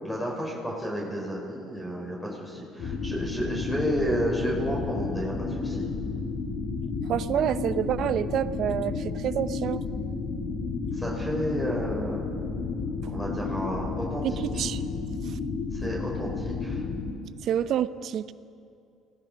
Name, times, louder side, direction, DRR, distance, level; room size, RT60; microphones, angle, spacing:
voice 1, 0.0-5.8 10.9-12.2 13.1-14.4 15.7-16.8, equal, 10° left, -2 dB, 6.3 m, -31 dB
sound 1, 2.8-17.1, left 4 dB, 55° left, 2.2 m, -32 dB
voice 2, 7.1-9.8 14.2-14.8 17.4-18.3, right 10 dB, 60° right, 14 dB, 0.7 m, -28 dB
24.5 x 17.5 x 6.2 m, 2.4 s
hypercardioid pair, 60°, 0 cm